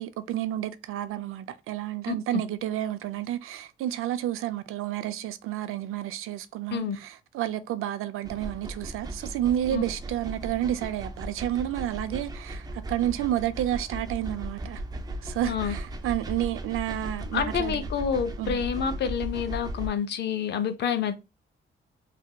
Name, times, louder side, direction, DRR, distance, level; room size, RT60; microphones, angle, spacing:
voice 1, 0.0-14.8 15.2-17.8 18.4-18.6, right 12 dB, 85° right, 0.4 m, -30 dB
voice 2, 2.1-2.4 6.7-7.0 9.7-9.8 15.4-15.7 17.3-21.2, left 7 dB, 55° left, 0.5 m, -28 dB
sound 1, 8.2-19.9, right 1 dB, 20° right, 0.3 m, -37 dB
3.3 x 2.7 x 2.2 m
wide cardioid pair, 165°, 21 cm